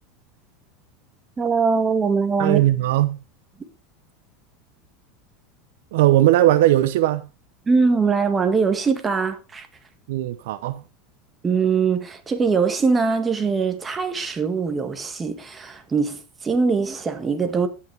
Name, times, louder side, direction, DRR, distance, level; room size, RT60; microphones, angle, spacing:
voice 1, 1.4-2.6 7.7-9.7 11.4-17.7, right 5 dB, 20° right, 1.8 m, -22 dB
voice 2, 2.4-3.2 5.9-7.2 10.1-10.8, right 14 dB, 80° right, 0.7 m, -18 dB
16.0 x 5.7 x 3.4 m
supercardioid pair, 115°, 0 cm